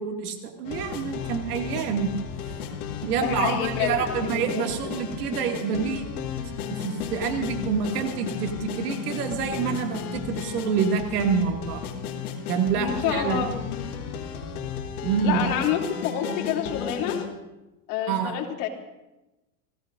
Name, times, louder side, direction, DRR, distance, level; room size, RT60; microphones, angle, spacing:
voice 1, 0.0-2.1 3.0-6.0 6.5-11.8 12.5-13.4 15.0-15.4 18.1-18.4, right 7 dB, 90° right, 3 dB, 2.5 m, -27 dB
sound 1, 0.6-17.3, left 7 dB, 85° left, 2.6 m, -34 dB
voice 2, 3.2-4.7 12.7-13.5 15.2-17.2 17.9-18.7, left 8 dB, 70° left, 0 dB, 3.2 m, -28 dB
28.5 x 16.5 x 2.7 m, 1.0 s
supercardioid pair, 120°, 44 cm